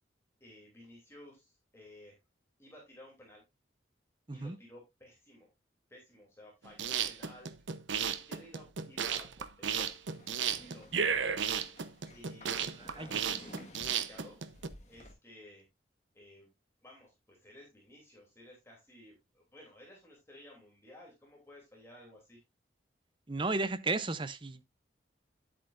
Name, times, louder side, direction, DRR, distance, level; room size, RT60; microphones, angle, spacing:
voice 1, 0.4-2.2 2.6-3.4 4.3-5.5 5.9-7.5 7.9-10.0 10.5-11.3 12.1-14.4 14.9-15.7 16.1-16.5 16.8-22.4, left 1 dB, 15° left, 2.9 m, -55 dB
sound 1, 6.6-14.7, right 7 dB, 85° right, 0.8 m, -33 dB
sound 2, 9.8-15.1, left 1 dB, 35° left, 1.6 m, -54 dB
voice 2, 23.3-24.6, right 3 dB, 25° right, 0.6 m, -34 dB
10.0 x 8.4 x 2.5 m
head